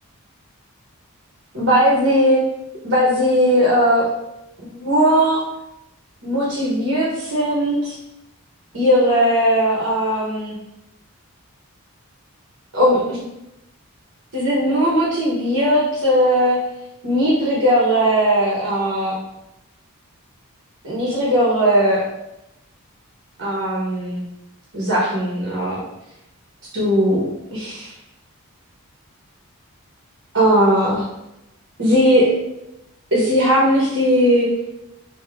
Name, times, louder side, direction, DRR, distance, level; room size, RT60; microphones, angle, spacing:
voice 1, 1.5-2.4 2.8-4.0 4.6-5.4 6.2-8.0 8.7-10.6 12.7-13.2 14.3-16.6 17.0-19.2 20.8-22.0 23.4-24.2 24.7-25.8 26.7-27.2 27.5-27.9 30.3-31.0 31.8-32.3 33.1-34.5, equal, 65° right, -6 dB, 1.2 m, -18 dB
3.6 x 2.9 x 4.5 m, 0.89 s
head